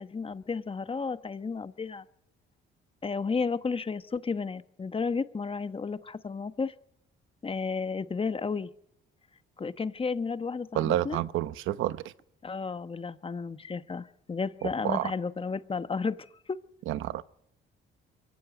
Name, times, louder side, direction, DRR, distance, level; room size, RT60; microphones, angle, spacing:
voice 1, 0.0-2.0 3.0-6.7 7.4-8.7 9.6-11.2 12.4-16.6, left 4 dB, 25° left, 1.1 m, -32 dB
voice 2, 10.7-12.0 14.6-15.1 16.9-17.2, right 13 dB, 85° right, 0.8 m, -29 dB
23.5 x 16.5 x 9.3 m
cardioid pair, 90°, 20 cm